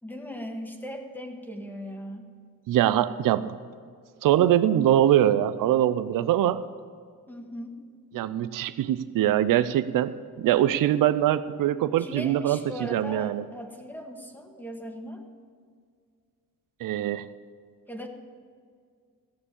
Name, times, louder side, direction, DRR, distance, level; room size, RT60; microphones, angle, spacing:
voice 1, 0.0-2.3 7.3-7.8 12.0-15.2 17.9-18.1, equal, 5° left, 3 dB, 1.6 m, -38 dB
voice 2, 2.7-3.5 4.2-6.6 8.1-10.1 10.4-13.4 16.8-17.3, right 11 dB, 75° right, 13 dB, 0.6 m, -23 dB
15.5 x 7.0 x 8.7 m, 2.1 s
cardioid pair, 115°, 33 cm